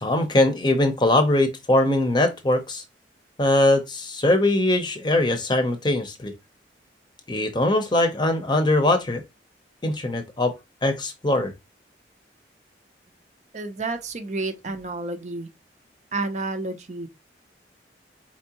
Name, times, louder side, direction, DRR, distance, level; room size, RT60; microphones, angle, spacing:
voice 1, 0.0-2.8 3.4-6.3 7.3-9.2 9.8-10.5 10.8-11.5, left 1 dB, 25° left, 0.7 m, -21 dB
voice 2, 13.5-15.5 16.1-17.1, right 3 dB, 40° right, 0.6 m, -30 dB
4.4 x 3.6 x 2.8 m
head